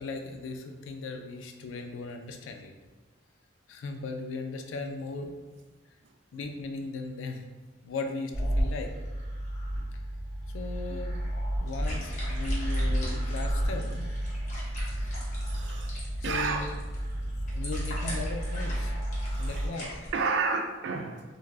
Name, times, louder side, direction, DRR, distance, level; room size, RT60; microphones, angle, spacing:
voice 1, 0.0-2.7 3.7-5.3 6.3-7.4 7.8-8.9 10.5-11.2 11.6-14.1 16.3-16.7 17.5-18.9 19.4-19.9, left 3 dB, 80° left, 5 dB, 0.3 m, -37 dB
sound 1, 8.3-19.7, right 1 dB, 15° left, 1.2 m, -32 dB
sound 2, 11.7-20.1, equal, 40° left, 0.7 m, -38 dB
voice 2, 15.4-16.0 16.2-16.7 19.2-19.7 20.1-21.2, right 4 dB, 65° right, 5 dB, 0.3 m, -31 dB
3.2 x 2.3 x 2.4 m, 1.3 s
head